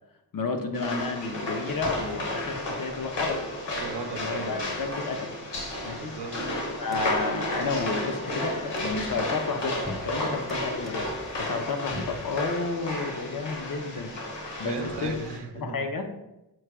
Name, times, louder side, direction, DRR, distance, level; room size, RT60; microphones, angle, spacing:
voice 1, 0.3-3.4 4.2-5.3 5.8-6.1 6.8-14.1 14.6-15.1 15.6-16.1, left 4 dB, 45° left, 5 dB, 0.6 m, -31 dB
sound 1, 0.7-15.4, left 1 dB, 65° left, 1.2 m, -33 dB
sound 2, 1.7-15.4, left 1 dB, ahead, 0.3 m, -46 dB
voice 2, 3.8-4.7 6.0-6.5 14.6-15.9, right 4 dB, 60° right, 6 dB, 0.6 m, -36 dB
4.6 x 2.2 x 4.6 m, 0.92 s
wide cardioid pair, 90°, 46 cm